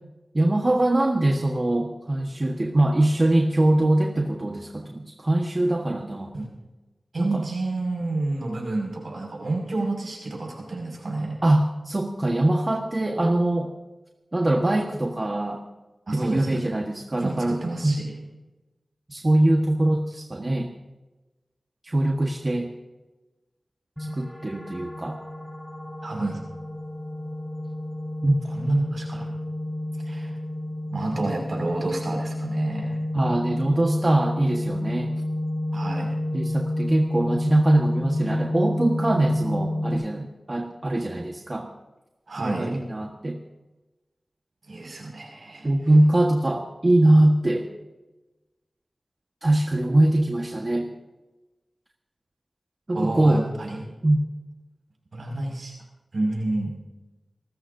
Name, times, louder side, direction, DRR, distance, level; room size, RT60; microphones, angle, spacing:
voice 1, 0.3-6.3 7.2-7.4 11.4-13.7 14.3-15.6 16.1-18.0 19.1-20.7 21.8-22.7 24.0-25.2 28.2-28.3 33.1-35.2 36.3-41.7 42.4-43.4 45.6-47.7 49.4-50.9 52.9-53.5 54.0-54.2, right 1 dB, 40° right, 1 dB, 1.5 m, -22 dB
voice 2, 7.1-11.4 16.1-16.6 17.2-18.1 26.0-26.4 28.5-29.3 30.0-30.3 30.9-33.0 35.7-36.2 42.3-42.8 44.7-45.7 52.9-53.8 55.1-55.7 56.1-56.7, right 2 dB, 75° right, 0 dB, 5.9 m, -29 dB
sound 1, 24.0-40.0, left 1 dB, 10° left, 4.3 m, -30 dB
28.5 x 13.5 x 2.8 m, 1.1 s
cardioid pair, 50°, 0 cm